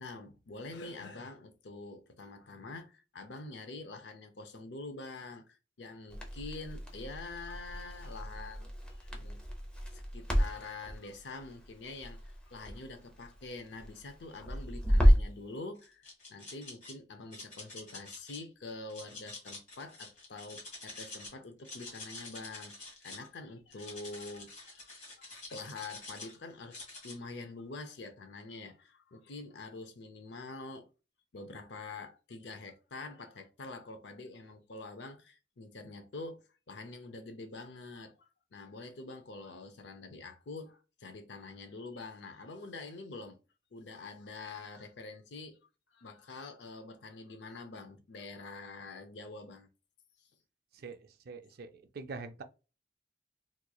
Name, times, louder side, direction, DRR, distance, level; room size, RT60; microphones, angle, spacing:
voice 1, 0.0-9.4 9.9-30.9 31.3-43.4 43.7-45.6 45.9-49.7, left 3 dB, 80° left, 0.6 m, -46 dB
Crackle, 6.1-15.4, equal, 5° left, 0.7 m, -31 dB
sound 1, 15.8-16.9 17.3-18.4 18.9-21.3 21.6-23.3 23.7-26.3 26.7-27.2, left 3 dB, 45° left, 1.7 m, -47 dB
voice 2, 50.7-52.4, right 4 dB, 60° right, 0.4 m, -45 dB
3.7 x 3.0 x 2.3 m
head